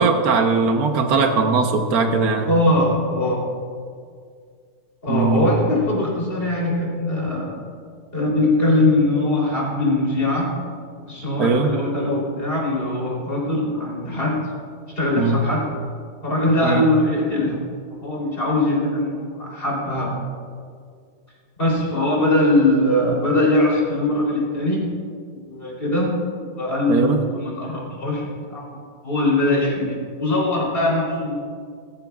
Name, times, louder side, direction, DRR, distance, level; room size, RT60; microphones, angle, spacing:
voice 1, 0.0-2.5 5.1-5.6 11.4-11.7 15.1-15.4 16.6-16.8 26.9-27.2, right 4 dB, 80° right, 4 dB, 1.4 m, -19 dB
voice 2, 2.5-3.5 5.0-7.5 8.1-10.5 11.0-14.4 15.0-15.6 16.2-17.6 17.9-20.1 21.6-24.8 25.3-26.1 26.4-28.8 29.0-31.4, left 1 dB, 40° left, -4 dB, 3.6 m, -21 dB
17.5 x 14.0 x 2.4 m, 2.1 s
omnidirectional pair, 1.6 m